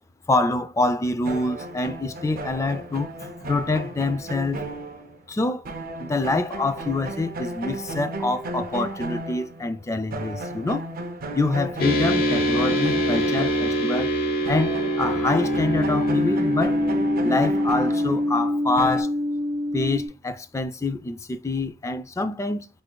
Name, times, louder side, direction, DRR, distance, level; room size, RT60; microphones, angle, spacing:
voice 1, 0.3-4.7 5.3-5.7 6.0-10.9 11.3-14.1 14.5-16.8 17.2-19.1 19.7-22.7, left 2 dB, 15° left, 0.3 m, -26 dB
sound 1, 1.2-5.4 5.6-9.8 10.1-14.2 14.4-19.0, right 2 dB, 45° right, 0.5 m, -34 dB
sound 2, 11.8-20.1, equal, 50° left, 0.9 m, -24 dB
4.5 x 3.3 x 2.3 m
head